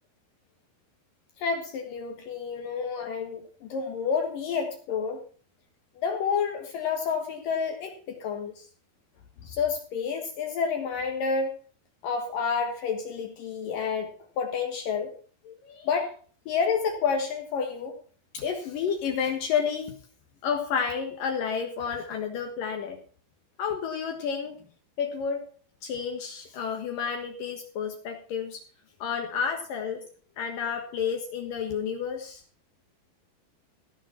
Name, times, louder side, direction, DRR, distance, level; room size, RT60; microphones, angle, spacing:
voice 1, 1.4-5.2 6.0-8.7 9.4-11.5 12.0-14.1 14.4-15.1 15.4-16.1 16.5-18.0 18.3-19.9 20.4-23.0 23.6-24.6 25.0-25.5 25.8-28.6 29.0-30.1 30.4-32.4, left 6 dB, 65° left, 4 dB, 3.0 m, -30 dB
16.0 x 7.2 x 5.8 m, 0.42 s
omnidirectional pair, 4.3 m